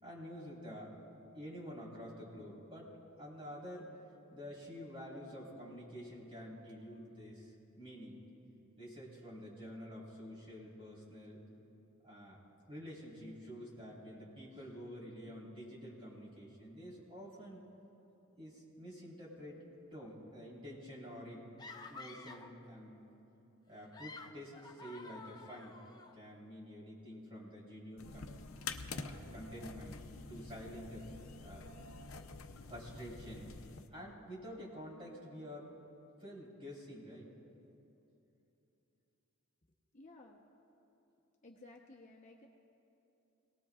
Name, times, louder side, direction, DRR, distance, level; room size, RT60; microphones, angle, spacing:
voice 1, 0.0-0.9 1.3-2.9 3.2-3.9 4.3-8.2 8.8-11.4 12.0-12.4 12.7-17.6 18.4-19.6 19.9-21.5 21.9-23.0 23.7-25.8 26.1-28.3 29.0-30.0 30.3-31.1 31.4-31.6 32.6-33.5 33.9-35.7 36.2-37.3, equal, 25° right, -5 dB, 4.0 m, -49 dB
sound 1, 21.6-22.6 23.7-26.1, left 3 dB, 20° left, 0.5 m, -51 dB
sound 2, 28.0-33.9, left 4 dB, 80° left, 0.7 m, -47 dB
voice 2, 39.9-40.4 41.4-42.5, left 2 dB, 35° left, -1 dB, 0.9 m, -56 dB
25.5 x 18.5 x 2.4 m, 2.9 s
head